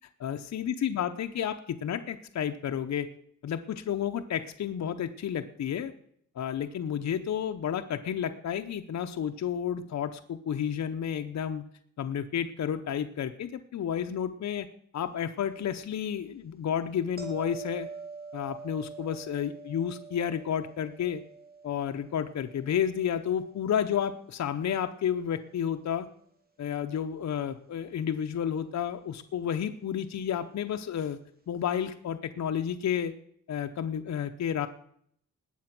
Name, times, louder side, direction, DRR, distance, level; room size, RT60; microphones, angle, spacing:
voice 1, 0.2-3.1 3.4-5.9 6.4-11.6 12.0-14.7 14.9-17.9 18.3-21.2 21.6-26.1 26.6-31.2 31.5-33.1 33.5-34.7, left 9 dB, 65° left, 7 dB, 0.8 m, -31 dB
sound 1, 17.2-24.2 29.4-29.6, right 4 dB, 30° right, 2.7 m, -45 dB
19.5 x 7.9 x 6.0 m, 0.67 s
wide cardioid pair, 125°, 30 cm